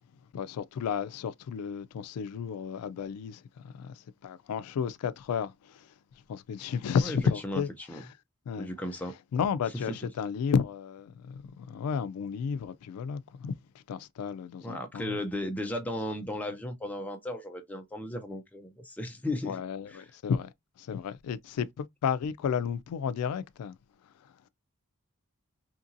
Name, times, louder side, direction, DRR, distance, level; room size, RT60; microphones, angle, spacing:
voice 1, 0.3-5.9 6.3-7.7 8.5-8.7 9.3-13.5 13.9-15.2 19.5-20.5 20.8-23.8, left 6 dB, 90° left, 0.3 m, -32 dB
voice 2, 7.4-8.0 8.6-9.1 9.9-10.0 14.6-19.6 19.9-20.1, left 1 dB, 5° left, 0.4 m, -35 dB
2.8 x 2.6 x 2.5 m
head